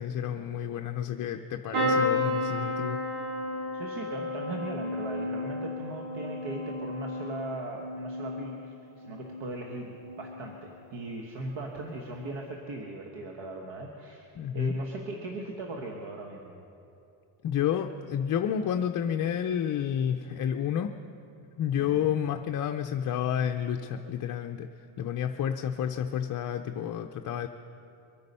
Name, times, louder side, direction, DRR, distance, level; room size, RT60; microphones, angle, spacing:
voice 1, 0.0-3.0 14.4-14.7 17.4-20.9 21.6-24.7 25.0-27.5, left 9 dB, 40° left, 5 dB, 0.5 m, -30 dB
sound 1, 1.7-9.6 10.0-10.6 11.8-12.0 12.2-12.3, left 2 dB, 80° right, 4.0 m, -32 dB
voice 2, 3.7-14.3 14.5-16.6 21.8-22.1, right 2 dB, 60° right, 1 dB, 1.5 m, -39 dB
24.0 x 9.5 x 5.5 m, 2.7 s
cardioid pair, 135°, 50 cm